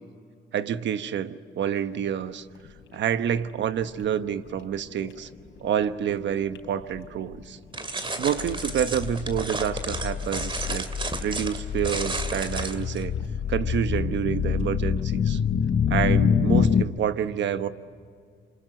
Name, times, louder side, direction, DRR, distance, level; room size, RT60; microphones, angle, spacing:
voice 1, 0.5-2.5 2.9-5.3 5.6-7.6 8.2-10.9 11.2-13.1 13.5-15.4 15.9-17.7, right 9 dB, 65° right, 11 dB, 1.1 m, -28 dB
sound 1, 1.6-16.8, left 6 dB, 70° left, 3.5 m, -50 dB
sound 2, 7.7-13.0, right 3 dB, 25° right, 2.5 m, -33 dB
sound 3, 8.4-16.8, left 7 dB, 45° left, 1.0 m, -26 dB
27.5 x 25.5 x 7.7 m, 2.2 s
cardioid pair, 90°, 20 cm